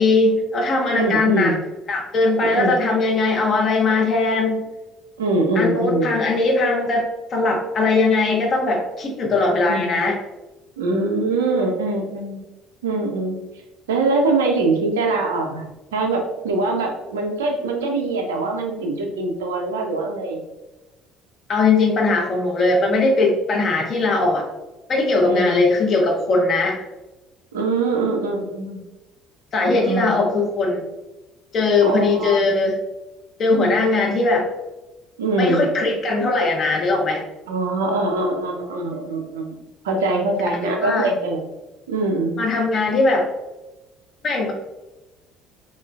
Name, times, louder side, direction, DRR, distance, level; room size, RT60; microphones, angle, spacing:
voice 1, 0.0-1.5 1.9-4.6 5.6-10.2 21.5-24.4 24.9-26.8 29.5-30.8 31.5-32.7 33.4-34.5 35.4-37.2 40.5-41.1 42.4-43.3 44.2-44.5, left 3 dB, 45° left, 0 dB, 0.6 m, -19 dB
voice 2, 1.0-1.6 2.4-2.7 5.2-6.1 9.7-10.0 10.8-12.4 12.8-13.4 13.9-20.4 25.3-25.6 27.5-28.8 29.8-30.2 31.8-32.4 35.2-35.6 37.5-39.6 39.8-41.4 41.9-42.4, right 2 dB, 75° right, 2 dB, 0.4 m, -23 dB
3.0 x 2.3 x 2.2 m, 1.0 s
figure-of-eight pair, 55°, 0 cm